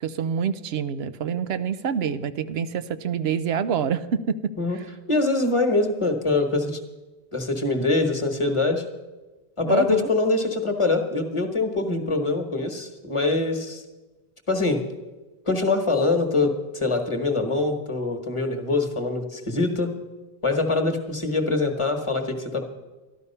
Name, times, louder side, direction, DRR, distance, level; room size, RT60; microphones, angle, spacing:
voice 1, 0.0-4.9 9.7-10.1, right 7 dB, 85° right, 12 dB, 0.9 m, -27 dB
voice 2, 5.1-6.8 7.3-8.8 9.6-13.8 14.5-14.8 15.4-19.9 20.4-22.7, left 3 dB, 30° left, 5 dB, 1.3 m, -24 dB
13.0 x 11.5 x 5.5 m, 1.2 s
omnidirectional pair, 1.0 m